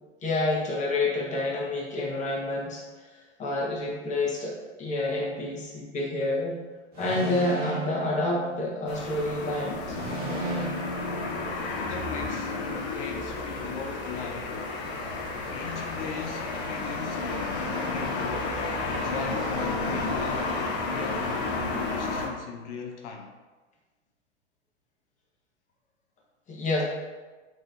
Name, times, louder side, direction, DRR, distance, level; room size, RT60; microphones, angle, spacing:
voice 1, 0.2-6.6 7.0-10.0 26.5-26.8, left 2 dB, 20° left, -3 dB, 1.2 m, -29 dB
sound 1, 6.9-9.1 9.9-12.1, right 2 dB, 25° right, 1.2 m, -34 dB
sound 2, 8.9-22.3, left 3 dB, 55° left, 1.1 m, -31 dB
voice 2, 11.9-14.6 15.5-18.3 18.8-23.4, left 6 dB, 75° left, 3 dB, 0.6 m, -39 dB
6.2 x 3.3 x 2.6 m, 1.3 s
hypercardioid pair, 125°, 36 cm